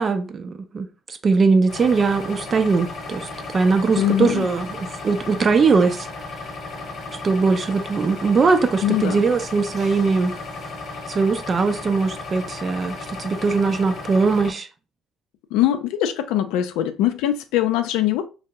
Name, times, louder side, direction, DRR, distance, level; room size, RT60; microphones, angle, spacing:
voice 1, 0.0-3.3 3.5-6.1 7.2-10.3 11.1-14.7, right 4 dB, 35° right, 0.4 m, -20 dB
sound 1, 1.7-14.5, left 3 dB, 50° left, 0.8 m, -34 dB
voice 2, 4.0-4.5 8.8-9.2 15.5-18.3, left 12 dB, 90° left, 0.4 m, -22 dB
2.7 x 2.0 x 3.4 m
cardioid pair, 100°, 0 cm